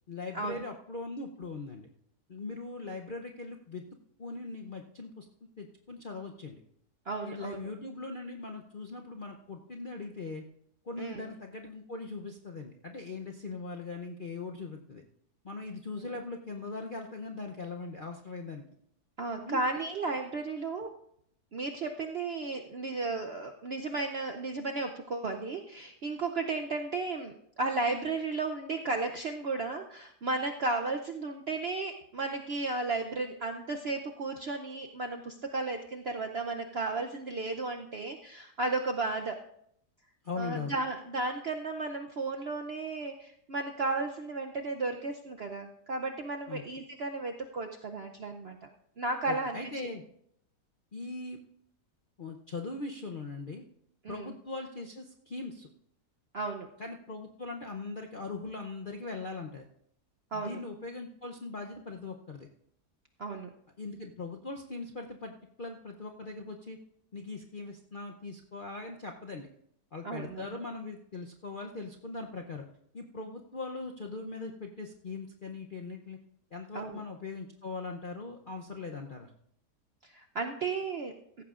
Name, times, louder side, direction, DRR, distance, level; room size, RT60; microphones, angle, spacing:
voice 1, 0.1-1.9 2.3-3.8 4.2-5.3 5.6-6.6 7.2-10.4 10.8-15.0 15.4-18.6 19.4-19.6 40.2-40.8 46.5-46.6 49.3-50.0 50.9-51.4 52.2-53.6 54.1-55.7 56.8-59.7 60.3-62.5 63.8-65.3 65.6-66.8 67.1-69.5 69.9-72.6 72.9-76.2 76.5-79.3, left 3 dB, 50° left, 2 dB, 0.6 m, -40 dB
voice 2, 7.1-7.7 11.0-11.3 16.0-16.1 19.2-20.9 21.5-39.4 40.4-48.6 49.0-49.6 54.0-54.3 56.3-56.7 60.3-60.6 63.2-63.5 70.0-70.5 76.7-77.0 80.0-81.1, right 3 dB, 60° right, 4 dB, 0.6 m, -34 dB
16.0 x 14.5 x 2.4 m, 0.72 s
omnidirectional pair, 1.8 m